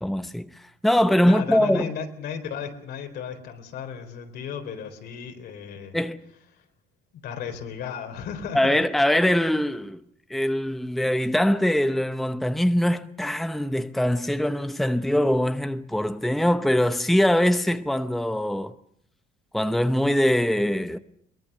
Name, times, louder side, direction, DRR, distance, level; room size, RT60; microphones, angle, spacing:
voice 1, 0.0-1.9 5.9-6.2 8.5-10.0 10.3-18.7 19.5-21.0, left 1 dB, ahead, 0.8 m, -22 dB
voice 2, 1.3-6.0 6.5-6.7 7.1-8.8, left 7 dB, 75° left, 4.0 m, -35 dB
22.5 x 20.5 x 6.8 m
cardioid pair, 110°, 17 cm